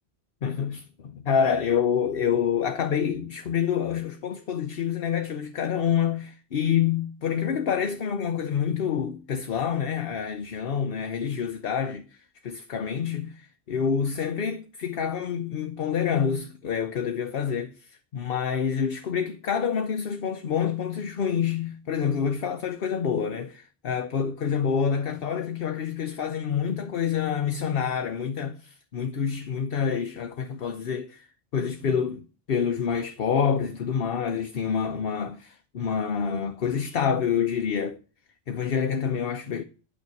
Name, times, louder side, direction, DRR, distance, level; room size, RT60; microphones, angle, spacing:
voice 1, 0.4-12.1 12.4-31.3 31.5-38.0 38.5-39.6, left 7 dB, 60° left, 1.0 m, -27 dB
9.4 x 6.5 x 8.2 m
omnidirectional pair, 1.1 m